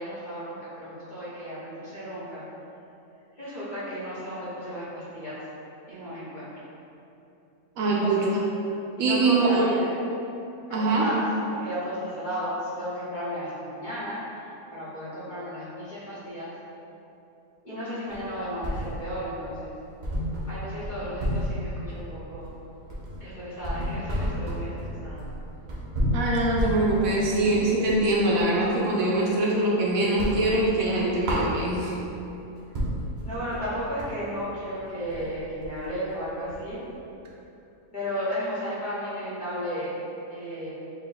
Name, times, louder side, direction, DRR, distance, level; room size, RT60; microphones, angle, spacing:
voice 1, 0.0-2.4 3.4-5.4 5.9-6.6 7.8-8.3 9.0-9.9 10.7-14.4 14.7-16.5 17.6-19.7 20.5-22.5 23.2-25.2 33.2-36.8 37.9-39.9 40.3-40.7, equal, 35° left, -11 dB, 1.0 m, -34 dB
voice 2, 7.8-8.3 9.0-9.6 10.7-11.1 26.1-31.9, right 2 dB, 75° right, -4 dB, 1.0 m, -23 dB
sound 1, 18.1-19.3 19.6-19.7 20.0-28.6 29.0-29.7 30.0-32.0 32.4-32.5 32.7-36.9, equal, 55° right, 0.5 m, -31 dB
4.4 x 2.2 x 3.9 m, 2.8 s
omnidirectional pair, 1.5 m